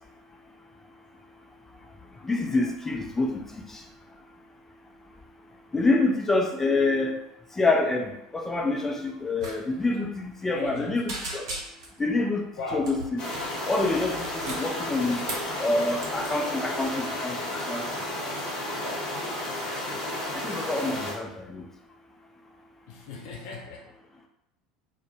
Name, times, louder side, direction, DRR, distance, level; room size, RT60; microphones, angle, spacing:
voice 1, 2.2-3.8 5.7-7.2 7.5-11.4 12.0-13.2 13.7-15.2 15.6-18.0 20.3-21.7, left 2 dB, 10° left, 2 dB, 0.4 m, -27 dB
sound 1, 9.4-9.6 9.8-10.0 10.4-10.8 11.1-12.0 12.8-13.5 14.1-15.5 16.0-16.3, right 2 dB, 65° right, 0.6 m, -37 dB
voice 2, 10.5-11.0 12.6-12.9 22.9-23.9, left 3 dB, 55° left, 0 dB, 0.6 m, -37 dB
sound 2, 13.2-21.1, left 1 dB, 35° left, 0.9 m, -32 dB
2.1 x 2.1 x 3.0 m, 0.84 s
figure-of-eight pair, 75°, 3 cm